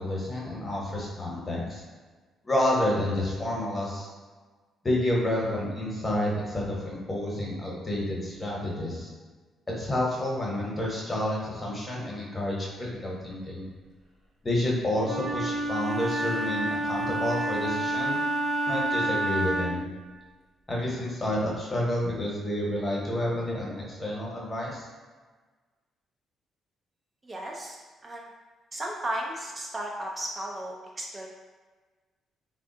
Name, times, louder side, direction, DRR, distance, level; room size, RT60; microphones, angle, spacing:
voice 1, 0.0-1.8 2.4-4.1 4.8-9.1 9.8-12.7 13.0-13.7 14.4-18.2 18.7-19.8 20.7-24.8, left 1 dB, 25° left, -4 dB, 0.9 m, -29 dB
Wind instrument woodwind instrument, 15.0-19.9, right 1 dB, 50° right, 0.7 m, -29 dB
voice 2, 27.2-27.8 28.0-28.3 28.7-31.3, right 1 dB, 25° right, -1 dB, 0.3 m, -35 dB
3.3 x 2.2 x 2.7 m, 1.4 s
cardioid pair, 90°, 0 cm